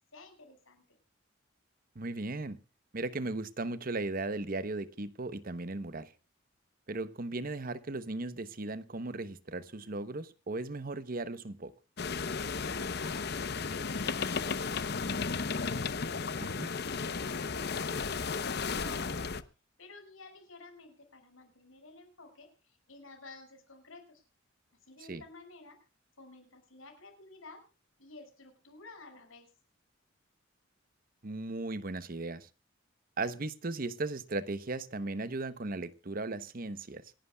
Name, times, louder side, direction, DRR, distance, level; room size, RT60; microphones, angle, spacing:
voice 1, 0.1-1.0 12.6-15.0 15.4-19.3 19.8-24.2 24.9-25.8 26.2-27.7 28.0-29.5, left 3 dB, 90° left, 6.0 m, -52 dB
voice 2, 1.9-2.6 2.9-6.1 6.9-11.7 16.6-16.7 25.1-25.2 31.2-32.5 33.2-37.0, right 2 dB, 45° right, 0.9 m, -37 dB
sound 1, 12.0-19.4, left 5 dB, 55° left, 0.8 m, -34 dB
27.0 x 11.0 x 2.3 m
head